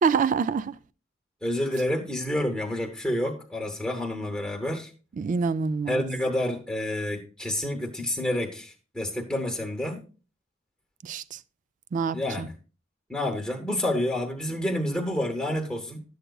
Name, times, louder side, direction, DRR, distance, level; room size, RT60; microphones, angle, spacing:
voice 1, 0.0-0.8 5.2-6.0 11.0-11.4 11.9-12.5, right 5 dB, 40° right, 0.3 m, -26 dB
voice 2, 1.4-4.9 5.9-10.0 12.1-12.5 13.1-16.0, left 1 dB, 5° left, 0.8 m, -29 dB
11.0 x 7.8 x 2.3 m
head